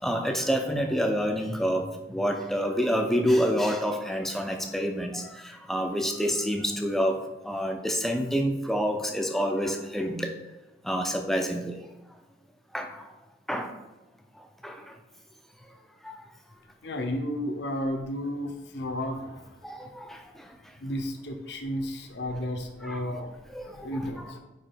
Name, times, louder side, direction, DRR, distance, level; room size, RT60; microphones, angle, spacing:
voice 1, 0.0-7.2 7.4-10.3 10.8-11.7 12.7-13.0 13.5-13.7 14.6-14.8 16.0-16.2 19.6-20.2 22.8-23.0 23.5-24.1, equal, ahead, 4 dB, 0.5 m, -28 dB
voice 2, 16.8-19.5 19.8-19.9 20.8-23.4 23.6-24.4, left 1 dB, 60° left, 5 dB, 0.8 m, -33 dB
4.8 x 4.7 x 4.6 m, 1.0 s
head